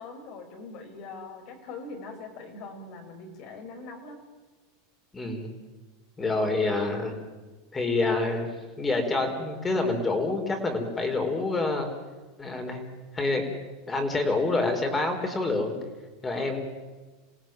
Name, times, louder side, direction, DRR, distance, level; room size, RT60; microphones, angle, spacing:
voice 1, 0.0-4.2 6.2-6.4, left 3 dB, 50° left, 4 dB, 5.7 m, -42 dB
voice 2, 5.1-5.5 6.2-7.2 7.7-8.5 8.8-11.9 12.4-12.8 13.1-13.5 13.9-15.8 16.2-16.6, left 3 dB, 15° left, 5 dB, 4.5 m, -27 dB
28.0 x 17.0 x 9.2 m, 1.3 s
supercardioid pair, 125°, 0 cm